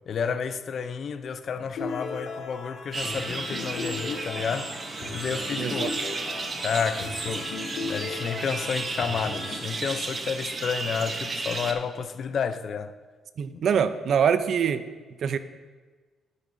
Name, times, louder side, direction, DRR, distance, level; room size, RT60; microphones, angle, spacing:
voice 1, 0.1-4.7 5.1-6.0 6.6-7.5 7.8-12.9 13.5-13.8, left 6 dB, 55° left, 0.5 m, -31 dB
sound 1, 1.8-9.6, left 3 dB, 75° left, 1.9 m, -37 dB
sound 2, 2.9-11.7, right 3 dB, 35° right, 0.8 m, -33 dB
voice 2, 5.6-5.9 13.4-14.9 15.2-15.4, right 7 dB, 65° right, 0.5 m, -24 dB
11.0 x 10.5 x 2.7 m
cardioid pair, 90°, 0 cm